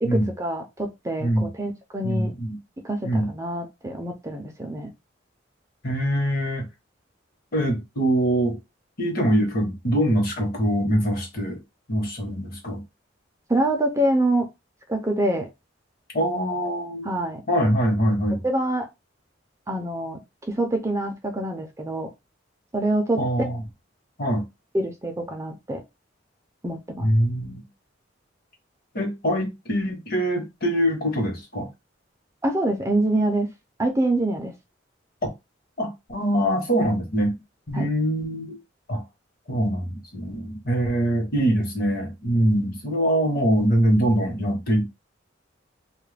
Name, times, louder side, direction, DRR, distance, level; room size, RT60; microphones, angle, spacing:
voice 1, 0.0-2.3 2.8-4.9 13.5-14.5 14.9-15.5 17.0-17.4 18.4-18.9 19.7-20.2 20.5-22.1 22.7-23.2 24.7-25.8 26.6-27.1 32.4-33.5 33.8-34.5 37.7-37.9, right 1 dB, 15° right, 0.4 m, -25 dB
voice 2, 2.0-2.6 3.0-3.3 5.8-6.7 7.5-8.6 9.0-11.6 11.9-12.8 16.1-17.1 17.5-18.4 23.2-23.6 24.2-24.4 27.0-27.6 28.9-31.7 35.2-35.3 35.8-37.4 37.7-38.6 38.9-39.0 39.5-44.9, equal, 50° left, 1.0 m, -23 dB
2.3 x 2.1 x 3.2 m
head